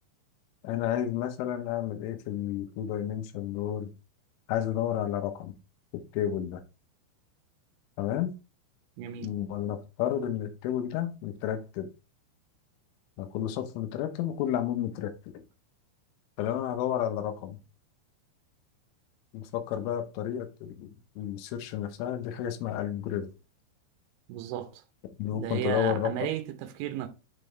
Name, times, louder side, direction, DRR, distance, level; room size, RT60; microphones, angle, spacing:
voice 1, 0.6-3.9 4.5-5.5 5.9-6.6 8.0-8.3 9.2-11.9 13.2-15.1 16.4-17.6 19.3-20.9 21.2-23.3 25.2-26.3, left 10 dB, 85° left, 3.3 m, -31 dB
voice 2, 9.0-9.3 24.3-24.8 25.3-27.1, right 12 dB, 80° right, 2.9 m, -34 dB
8.2 x 4.0 x 3.2 m
omnidirectional pair, 5.6 m